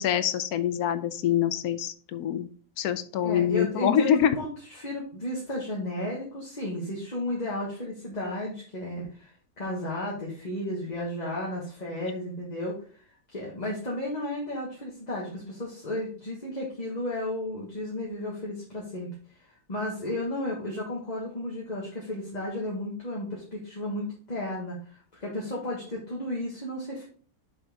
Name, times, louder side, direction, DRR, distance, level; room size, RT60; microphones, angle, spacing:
voice 1, 0.0-2.5 2.8-4.4, left 9 dB, 90° left, 12 dB, 1.2 m, -25 dB
voice 2, 3.2-9.3 9.6-13.0 13.3-27.1, left 1 dB, 30° left, -4 dB, 1.7 m, -33 dB
7.0 x 5.5 x 3.6 m, 0.43 s
omnidirectional pair, 1.5 m